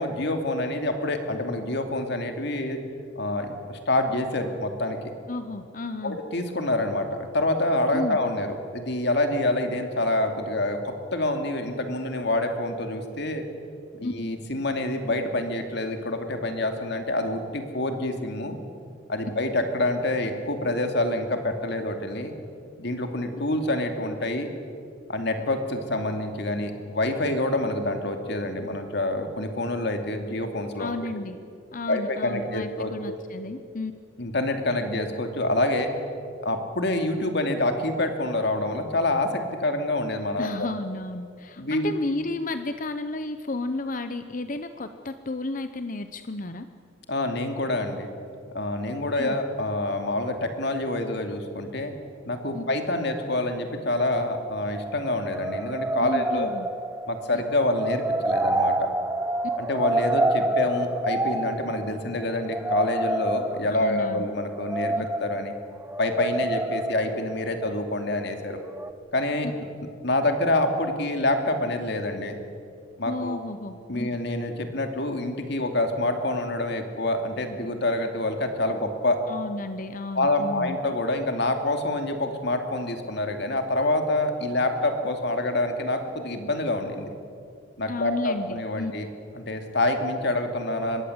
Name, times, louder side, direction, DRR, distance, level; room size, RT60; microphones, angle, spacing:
voice 1, 0.0-2.8 3.2-5.0 6.0-8.5 8.7-13.4 14.0-18.6 19.1-22.3 22.8-24.5 25.1-30.9 31.9-33.2 34.2-35.9 36.4-40.7 41.6-41.9 47.1-48.1 48.5-51.9 52.3-56.5 57.1-58.9 59.6-64.9 65.2-65.5 66.0-68.6 69.1-69.5 70.0-72.4 73.0-73.4 73.9-79.2 80.1-87.1 87.8-89.1 89.3-91.0, left 2 dB, 60° left, 5 dB, 2.6 m, -27 dB
voice 2, 5.3-6.2 7.9-8.2 14.0-14.1 30.8-31.4 31.7-33.9 40.4-46.7 49.2-49.3 52.5-52.6 56.0-56.7 57.3-57.4 63.7-64.3 65.0-65.1 73.0-74.1 79.3-80.8 87.9-88.9, left 2 dB, 45° left, 9 dB, 0.8 m, -32 dB
sound 1, 54.7-68.3 68.7-68.9, right 2 dB, 10° right, 0.9 m, -28 dB
24.5 x 21.0 x 8.0 m, 2.3 s
head